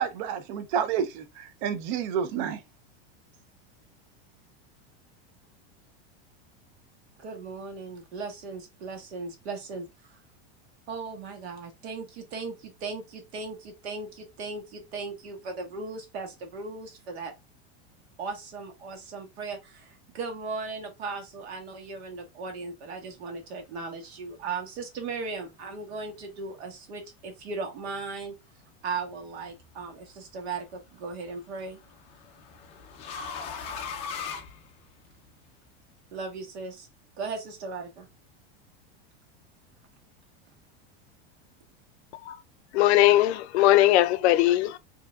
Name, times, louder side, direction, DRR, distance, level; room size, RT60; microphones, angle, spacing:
voice 1, 0.0-2.6, right 8 dB, 45° right, 0.6 m, -29 dB
voice 2, 7.2-9.9 10.9-17.3 18.2-28.3 28.8-31.8 36.1-36.9 37.2-38.1, right 4 dB, 80° right, 1.5 m, -37 dB
sound 1, 29.4-29.8 31.3-35.3, left 6 dB, 20° left, 0.4 m, -39 dB
voice 3, 42.7-44.8, left 14 dB, 90° left, 0.5 m, -20 dB
4.5 x 2.8 x 2.2 m
supercardioid pair, 170°, 32 cm